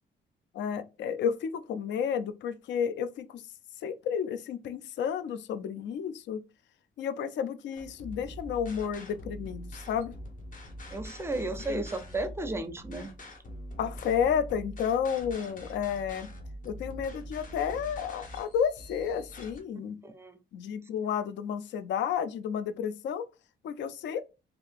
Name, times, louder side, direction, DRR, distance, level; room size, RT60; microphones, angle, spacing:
voice 1, 0.5-3.3 3.8-6.4 7.0-10.2 11.7-11.8 13.8-16.3 16.7-20.0 20.5-23.2 23.6-24.3, left 7 dB, 65° left, 0.4 m, -31 dB
sound 1, 7.8-19.6, equal, 40° left, 0.9 m, -44 dB
voice 2, 10.9-13.1 20.0-20.4, right 2 dB, 15° right, 0.4 m, -34 dB
2.7 x 2.5 x 3.2 m
cardioid pair, 90°, 20 cm